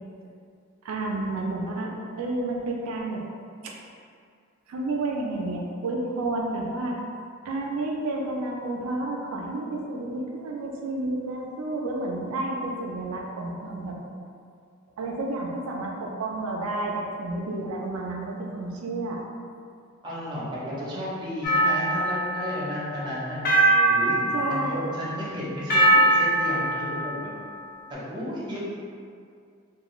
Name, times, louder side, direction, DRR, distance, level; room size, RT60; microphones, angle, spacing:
voice 1, 0.8-1.9 2.2-3.2 3.6-3.7 4.7-7.0 7.4-14.0 15.0-19.2 24.3-24.9, right 2 dB, 90° right, -1 dB, 0.4 m, -30 dB
voice 2, 20.0-23.6 23.9-24.2 24.5-27.3 27.9-28.6, equal, 20° right, -8 dB, 0.6 m, -33 dB
sound 1, 21.4-22.7 23.4-25.0 25.7-27.2, right 1 dB, 45° left, 0.6 m, -22 dB
2.4 x 2.3 x 2.9 m, 2.3 s
head